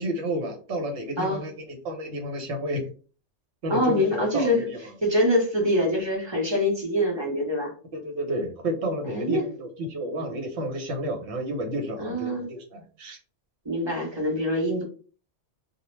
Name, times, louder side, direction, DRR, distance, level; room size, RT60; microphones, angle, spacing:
voice 1, 0.0-2.9 3.6-4.8 7.9-13.2, right 1 dB, 65° right, 3 dB, 1.0 m, -31 dB
voice 2, 3.7-4.7 5.0-7.7 9.0-9.5 12.0-12.5 13.6-14.8, left 1 dB, 30° right, -1 dB, 0.5 m, -24 dB
2.3 x 2.0 x 3.1 m, 0.39 s
omnidirectional pair, 1.3 m